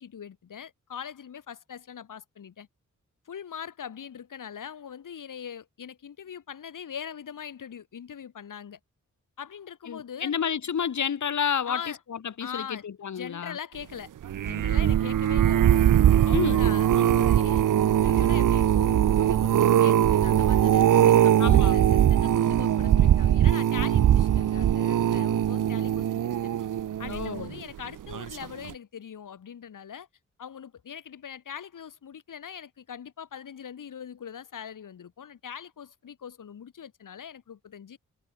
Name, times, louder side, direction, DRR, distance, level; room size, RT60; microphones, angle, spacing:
voice 1, 0.0-2.7 3.3-8.8 9.4-10.4 11.6-12.0 12.4-12.8 13.1-14.1 14.4-15.8 16.2-26.4 27.0-30.1 30.4-38.0, left 8 dB, 90° left, 3.9 m, -41 dB
voice 2, 9.9-13.6 16.3-16.7 21.4-21.8 27.1-27.5, left 7 dB, 70° left, 2.5 m, -30 dB
sound 1, 14.2-27.6 28.1-28.4 28.7-28.8, right 10 dB, 90° right, 0.8 m, -21 dB
wide cardioid pair, 160°, 31 cm